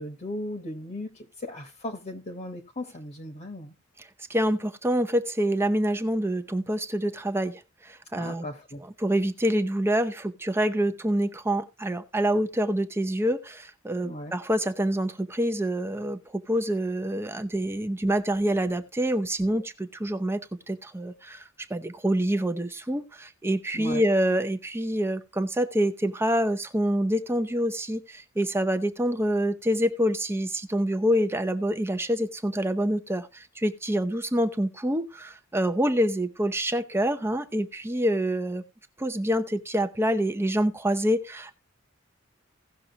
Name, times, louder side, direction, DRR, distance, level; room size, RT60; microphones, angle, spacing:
voice 1, 0.0-3.7 8.1-8.8 14.0-14.3 23.7-24.0, left 1 dB, 40° left, 1.2 m, -37 dB
voice 2, 4.3-8.5 9.0-20.4 20.7-21.4 21.7-38.6 39.0-41.5, equal, 10° right, 0.7 m, -26 dB
17.0 x 6.1 x 2.8 m
head